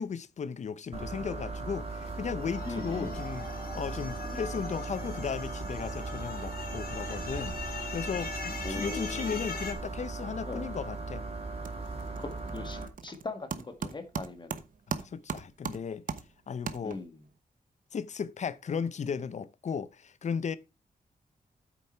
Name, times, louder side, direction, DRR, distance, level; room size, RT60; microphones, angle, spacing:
voice 1, 0.0-3.4 3.7-11.2 14.9-16.0 16.5-17.0 17.9-20.6, left 6 dB, 50° left, 0.6 m, -36 dB
sound 1, 0.9-12.9, right 3 dB, 40° right, 2.7 m, -38 dB
sound 2, 2.4-9.7, left 4 dB, 85° left, 3.3 m, -41 dB
voice 2, 2.7-3.2 4.3-4.5 8.6-9.5 10.4-10.7 12.2-14.6 16.8-17.2, left 3 dB, 30° left, 1.7 m, -40 dB
sound 3, 10.8-11.2 11.4-17.3, right 6 dB, 60° right, 1.0 m, -40 dB
8.7 x 7.0 x 4.5 m
wide cardioid pair, 165°, 16 cm